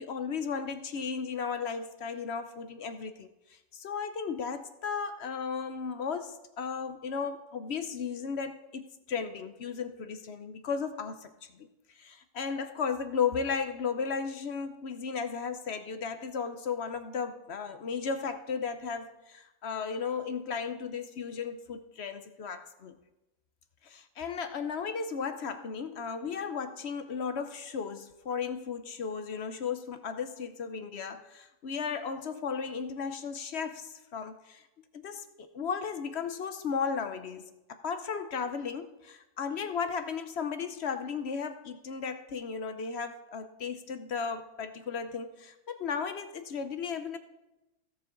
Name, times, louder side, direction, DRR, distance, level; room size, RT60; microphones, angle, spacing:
voice 1, 0.0-11.7 11.9-23.0 23.8-34.7 34.9-47.2, left 6 dB, 55° left, 9 dB, 0.8 m, -35 dB
16.5 x 7.0 x 3.8 m, 0.97 s
omnidirectional pair, 1.6 m